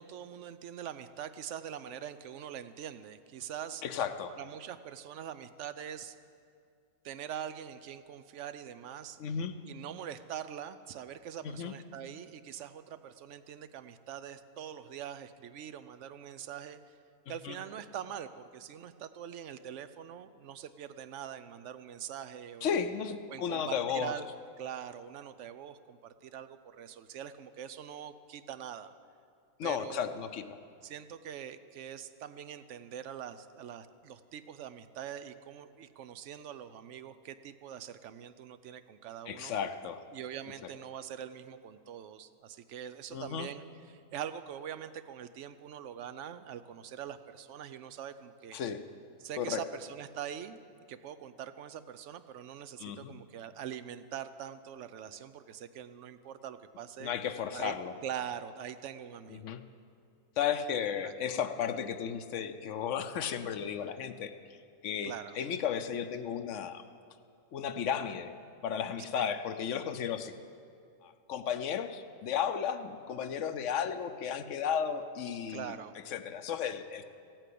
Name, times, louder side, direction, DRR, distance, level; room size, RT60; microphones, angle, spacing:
voice 1, 0.0-3.8 4.4-6.2 7.0-9.2 9.6-17.0 17.3-22.7 23.3-24.3 24.6-28.9 29.6-30.2 30.8-39.6 40.1-48.6 49.2-50.6 50.9-57.1 57.5-59.5 61.0-61.1 65.0-65.4 69.1-69.3 75.5-75.9, right 9 dB, 65° right, 13 dB, 0.9 m, -43 dB
voice 2, 3.8-4.3 9.2-9.5 11.4-11.7 17.3-17.6 22.6-24.1 29.6-30.4 39.3-40.0 43.1-43.5 48.5-48.8 49.4-49.6 52.8-53.1 57.0-57.9 59.3-59.6 60.4-64.3 64.8-66.8 67.5-68.3 68.6-70.4 71.0-75.8 76.1-77.0, left 8 dB, 65° left, 10 dB, 1.0 m, -34 dB
16.0 x 9.0 x 8.5 m, 2.4 s
omnidirectional pair, 1.5 m